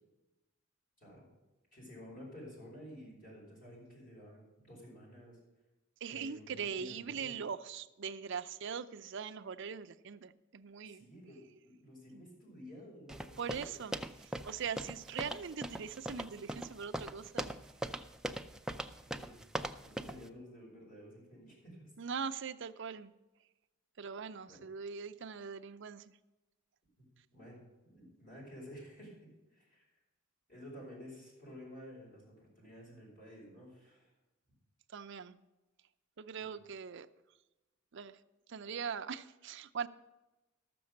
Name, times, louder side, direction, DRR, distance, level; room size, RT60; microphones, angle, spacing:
voice 1, 1.0-1.3 1.7-5.4 6.1-7.4 10.9-13.9 19.1-19.4 19.8-21.9 24.5-24.6 27.3-29.1 29.5-29.8 30.5-34.1 36.4-36.5, equal, 45° left, -4 dB, 5.1 m, -52 dB
voice 2, 6.0-11.1 12.1-12.2 13.4-13.9 14.2-17.5 22.0-23.1 24.0-26.1 34.9-35.4 36.2-37.1 37.9-38.2 38.5-39.9, right 6 dB, 60° right, 10 dB, 0.5 m, -41 dB
sound 1, 13.1-20.2, right 1 dB, 5° right, 0.3 m, -41 dB
13.0 x 6.9 x 6.4 m, 1.1 s
head